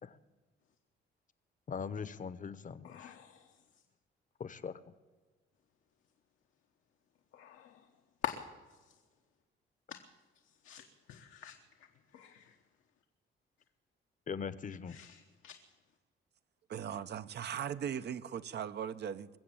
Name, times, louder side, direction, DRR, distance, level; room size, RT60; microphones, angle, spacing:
voice 1, 1.7-3.2 4.4-4.7 14.3-15.0, left 6 dB, 40° left, 0.9 m, -41 dB
voice 2, 2.8-3.5 7.3-7.8 8.2-8.5 9.9-10.0 10.6-11.5 12.1-12.5 14.9-15.5, left 10 dB, 80° left, 1.2 m, -44 dB
voice 3, 16.7-19.3, right 8 dB, 55° right, 0.7 m, -38 dB
21.5 x 7.6 x 8.9 m
cardioid pair, 90°, 20 cm